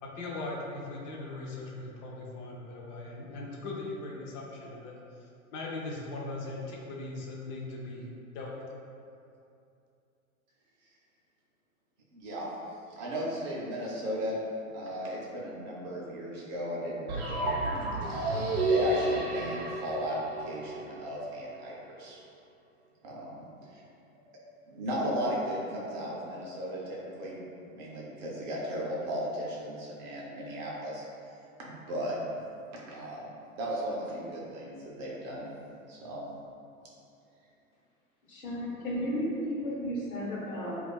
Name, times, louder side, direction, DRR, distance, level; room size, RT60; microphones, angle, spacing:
voice 1, 0.0-4.9 5.5-8.0 8.3-8.7, left 2 dB, 35° left, -3 dB, 0.4 m, -39 dB
voice 2, 12.1-12.5 12.9-14.4 14.7-17.6 18.1-22.2 23.0-23.4 23.7-23.8 24.7-27.4 27.7-31.0 31.7-32.2 32.7-35.4 35.9-36.2, equal, 35° right, -5 dB, 0.5 m, -36 dB
sound 1, 17.1-21.0, right 1 dB, 85° right, 0.6 m, -31 dB
voice 3, 38.3-40.8, equal, 85° left, -6 dB, 0.9 m, -33 dB
2.5 x 2.3 x 2.2 m, 2.6 s
hypercardioid pair, 105°, 42 cm